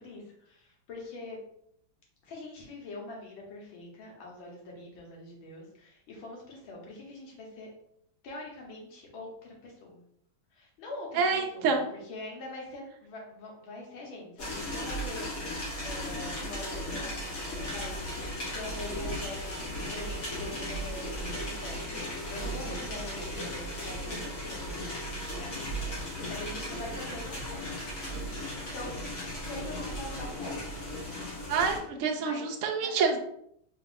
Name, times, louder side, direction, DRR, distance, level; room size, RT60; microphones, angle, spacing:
voice 1, 0.0-1.4 2.2-7.7 8.2-10.0 10.5-15.3 15.8-27.8 28.7-28.9 29.4-30.8 32.2-32.5 32.8-33.2, left 2 dB, 85° left, -2 dB, 1.9 m, -44 dB
voice 2, 11.2-11.8 31.5-33.2, right 5 dB, 85° right, 2 dB, 0.6 m, -27 dB
sound 1, 14.4-31.8, equal, 45° left, 1.6 m, -36 dB
3.9 x 3.7 x 2.5 m, 0.71 s
omnidirectional pair, 2.1 m